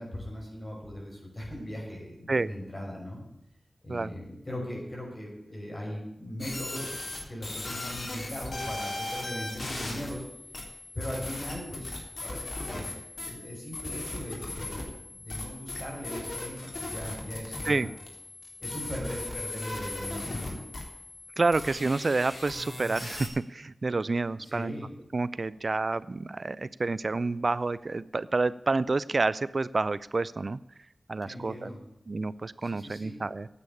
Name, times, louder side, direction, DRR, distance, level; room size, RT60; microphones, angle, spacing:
voice 1, 0.0-3.2 3.8-6.9 7.3-10.2 10.9-17.9 18.6-20.6 24.4-24.9 31.2-31.8 32.6-33.1, equal, 30° left, -2 dB, 5.8 m, -39 dB
Scary glitch noises, 6.4-23.3, left 2 dB, 55° left, 3.8 m, -38 dB
voice 2, 21.4-24.7 25.1-30.6 31.1-31.7 32.1-33.5, right 3 dB, 50° right, 18 dB, 0.4 m, -29 dB
9.7 x 8.6 x 9.8 m, 0.90 s
wide cardioid pair, 80°, 0 cm